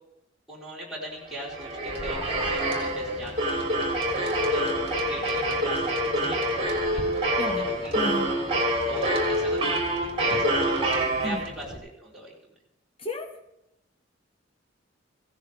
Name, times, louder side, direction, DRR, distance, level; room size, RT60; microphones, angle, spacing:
voice 1, 0.5-3.8 4.2-4.7 4.9-7.4 7.7-8.0 8.8-10.9 11.2-12.3, right 1 dB, ahead, -7 dB, 4.5 m, -40 dB
sound 1, 1.3-11.8, right 1 dB, 30° right, 3.5 m, -26 dB
voice 2, 7.4-8.3 11.2-11.4 13.0-13.4, left 1 dB, 30° left, 3 dB, 1.4 m, -33 dB
16.5 x 14.0 x 3.6 m, 0.87 s
head